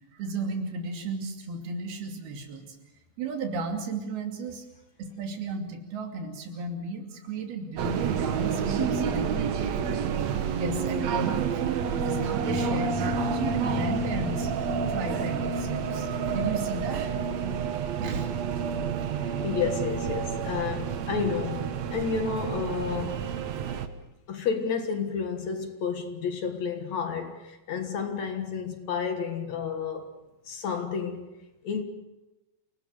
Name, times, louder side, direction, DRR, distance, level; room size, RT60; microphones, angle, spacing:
voice 1, 0.1-2.8 3.2-4.6 5.0-10.0 10.6-14.5 14.9-17.1 18.0-18.3 23.5-23.7, right 3 dB, 85° right, 4.6 m, -34 dB
sound 1, 7.8-23.9, right 6 dB, 60° right, 2.0 m, -29 dB
voice 2, 19.2-23.3 24.3-30.1 30.5-31.3 31.6-31.8, left 6 dB, 55° left, 2.5 m, -31 dB
28.0 x 18.5 x 6.5 m
omnidirectional pair, 4.3 m